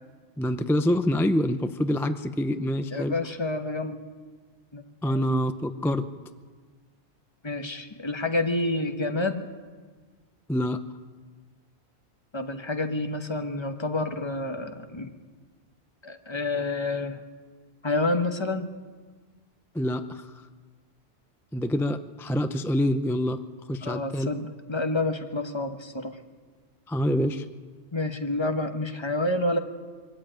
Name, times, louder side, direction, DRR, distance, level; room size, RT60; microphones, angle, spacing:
voice 1, 0.4-3.1 5.0-6.1 10.5-10.8 19.7-20.3 21.5-23.4 23.7-24.3 26.9-27.4, equal, 5° left, 10 dB, 0.5 m, -26 dB
voice 2, 2.9-4.0 4.7-5.2 7.4-9.4 12.3-15.1 16.0-17.2 17.8-18.7 23.8-26.2 27.9-29.6, left 2 dB, 25° left, 6 dB, 1.2 m, -29 dB
22.5 x 13.5 x 9.0 m, 1.5 s
omnidirectional pair, 1.1 m